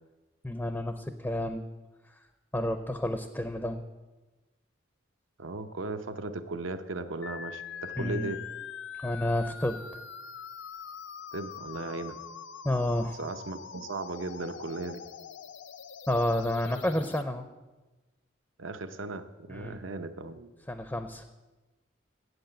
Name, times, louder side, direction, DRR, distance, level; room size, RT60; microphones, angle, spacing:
voice 1, 0.4-1.6 2.5-3.8 8.0-8.3 9.0-9.8 12.6-13.2 16.1-17.5 19.5-19.8 20.7-21.3, left 1 dB, 10° left, 8 dB, 0.5 m, -30 dB
voice 2, 5.4-8.5 11.3-12.2 13.1-15.1 18.6-20.5, right 3 dB, 80° right, 9 dB, 0.8 m, -37 dB
sound 1, 7.2-17.2, left 7 dB, 65° left, 0.5 m, -43 dB
8.0 x 8.0 x 8.7 m, 1.2 s
head